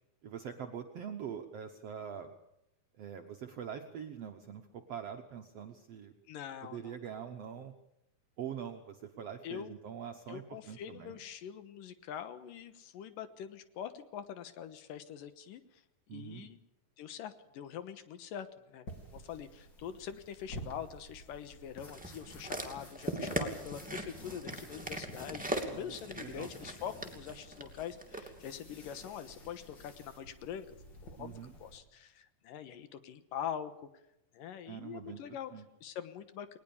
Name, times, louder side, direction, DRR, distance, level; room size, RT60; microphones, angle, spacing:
voice 1, 0.2-2.3 2.9-6.1 6.6-7.7 8.4-11.2 16.1-16.5 23.3-23.5 25.7-26.5 31.2-31.5 34.7-35.2 35.5-35.6, right 8 dB, 65° right, 4 dB, 1.6 m, -44 dB
voice 2, 6.3-6.9 9.4-9.7 10.3-15.8 16.1-16.6 17.0-30.7 31.0-33.9 34.3-35.5 35.8-36.6, left 9 dB, 70° left, 11 dB, 2.7 m, -44 dB
sound 1, 18.9-31.8, equal, 30° left, 3.4 m, -51 dB
sound 2, 21.9-28.3 29.0-29.1, right 1 dB, 5° right, 1.7 m, -40 dB
20.0 x 20.0 x 7.1 m, 0.83 s
omnidirectional pair, 4.2 m